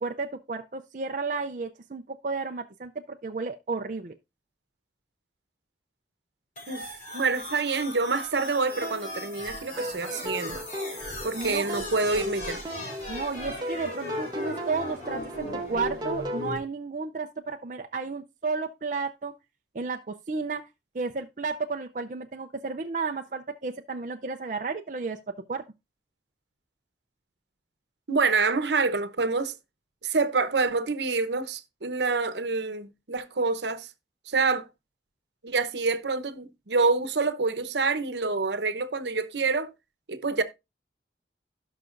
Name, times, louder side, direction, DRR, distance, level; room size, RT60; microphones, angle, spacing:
voice 1, 0.0-4.1 11.3-11.7 13.1-19.3 19.7-20.7 20.9-25.6, right 4 dB, 45° right, 0.5 m, -32 dB
sound 1, 6.6-16.6, left 1 dB, 45° left, 5.4 m, -38 dB
voice 2, 7.1-10.6 11.2-12.6 28.1-29.5 30.0-33.9 34.3-34.7 35.4-39.7 40.1-40.4, right 4 dB, 75° right, 0.9 m, -27 dB
sound 2, 8.8-16.5, equal, 25° right, 1.0 m, -37 dB
17.0 x 5.8 x 2.5 m
head